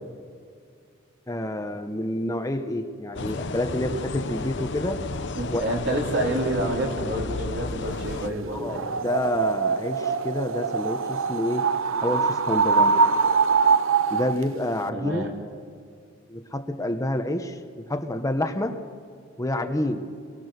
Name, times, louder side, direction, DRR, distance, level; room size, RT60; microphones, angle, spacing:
voice 1, 1.3-5.0 5.5-5.6 8.5-11.7 12.0-13.0 14.1-15.3 16.3-18.8 19.4-20.2, left 1 dB, 15° left, 7 dB, 1.0 m, -28 dB
sound 1, 3.1-8.3, left 3 dB, 65° left, 1.0 m, -32 dB
voice 2, 5.4-8.9 14.9-15.3, right 1 dB, 65° right, 0 dB, 4.1 m, -28 dB
sound 2, 8.7-14.4, right 5 dB, 85° right, 0.7 m, -23 dB
25.5 x 22.5 x 6.7 m, 2.2 s
head